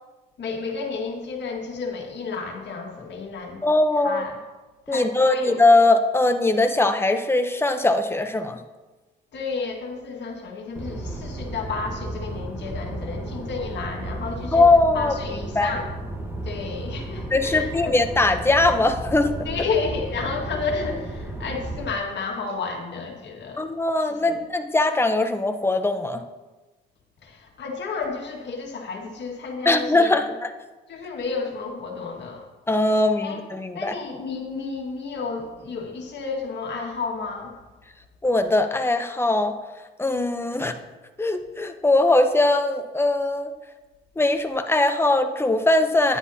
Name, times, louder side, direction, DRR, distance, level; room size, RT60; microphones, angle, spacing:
voice 1, 0.4-3.7 4.0-4.4 4.9-5.6 9.3-14.6 14.9-15.9 16.4-18.0 19.5-23.7 24.1-24.4 27.2-30.3 30.9-32.4 33.2-33.4 33.7-37.5 40.6-40.7, left 4 dB, 60° left, 0 dB, 1.9 m, -31 dB
voice 2, 3.6-4.2 4.9-8.6 14.5-15.8 17.3-19.5 23.6-26.2 29.6-30.5 32.7-33.9 38.2-39.5 40.0-40.7 41.2-43.5 44.2-46.2, left 2 dB, 10° left, 7 dB, 0.7 m, -21 dB
sound 1, 10.7-21.9, right 1 dB, 10° right, 1.2 m, -33 dB
10.0 x 9.7 x 2.8 m, 1.2 s
cardioid pair, 90°, 20 cm